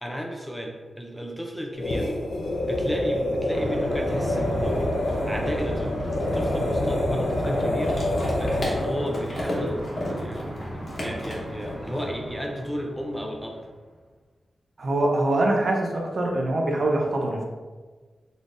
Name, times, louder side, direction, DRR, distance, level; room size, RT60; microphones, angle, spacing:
voice 1, 0.0-2.2 2.6-4.9 5.3-8.0 8.4-10.6 11.0-13.6, equal, ahead, 0 dB, 0.4 m, -33 dB
sound 1, 1.7-9.1, left 1 dB, 80° left, 0.6 m, -27 dB
sound 2, 3.5-3.6 3.8-12.0, left 1 dB, 45° left, 1.0 m, -35 dB
sound 3, 3.5-13.8, right 1 dB, 75° right, 1.5 m, -35 dB
voice 2, 14.8-17.4, right 1 dB, 50° right, 1 dB, 0.6 m, -24 dB
4.0 x 3.3 x 2.5 m, 1.4 s
wide cardioid pair, 120°, 0 cm